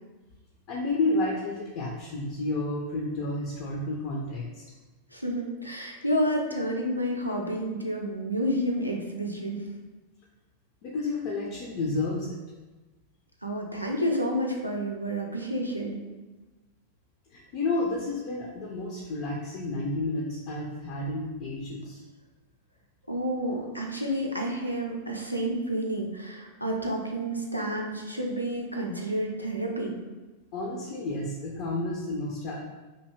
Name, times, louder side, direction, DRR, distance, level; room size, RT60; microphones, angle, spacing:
voice 1, 0.7-4.6 10.8-12.4 17.3-22.1 30.5-32.6, left 2 dB, 45° left, -2 dB, 0.4 m, -31 dB
voice 2, 5.1-9.6 13.4-16.0 23.1-29.9, equal, 90° right, 0 dB, 0.4 m, -30 dB
2.8 x 2.6 x 3.0 m, 1.2 s
figure-of-eight pair, 90°, 0 cm